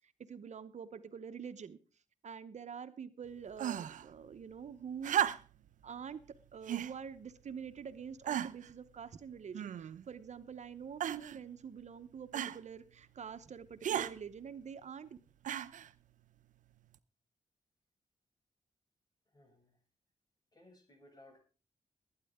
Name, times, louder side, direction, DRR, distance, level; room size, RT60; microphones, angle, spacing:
voice 1, 0.2-1.8 2.2-5.1 5.8-6.2 6.5-15.2, right 7 dB, 65° right, 11 dB, 0.8 m, -46 dB
sound 1, 3.6-4.1 5.0-5.7 6.7-7.0 7.7-7.8 8.3-8.7 9.5-10.1 11.0-11.4 12.3-12.6 13.8-14.1 15.4-15.9 16.9-17.0, right 10 dB, 90° right, 0.6 m, -35 dB
voice 2, 19.3-19.8 20.5-21.4, left 1 dB, 30° left, 3 dB, 6.9 m, -60 dB
20.5 x 9.6 x 3.6 m, 0.36 s
cardioid pair, 65°, 13 cm